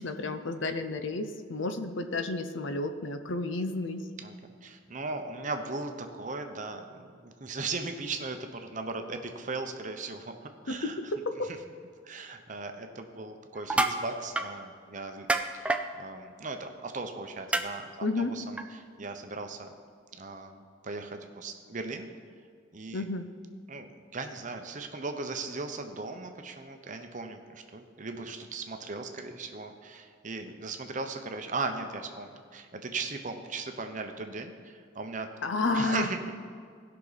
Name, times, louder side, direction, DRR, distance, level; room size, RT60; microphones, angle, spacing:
voice 1, 0.0-4.1 10.7-11.5 18.0-18.4 22.9-23.3 35.4-36.1, left 2 dB, 65° left, 8 dB, 0.7 m, -31 dB
voice 2, 4.6-10.3 10.6-11.0 11.5-11.6 12.0-15.3 15.5-15.7 15.9-19.7 20.2-22.1 22.7-23.0 23.7-35.3 35.7-36.3, right 3 dB, 40° right, 6 dB, 0.7 m, -38 dB
sound 1, 13.6-14.0 14.4-14.5 15.3-15.8 17.5-17.6 18.6-18.7, right 2 dB, 5° right, 0.3 m, -26 dB
16.5 x 5.9 x 4.1 m, 2.1 s
head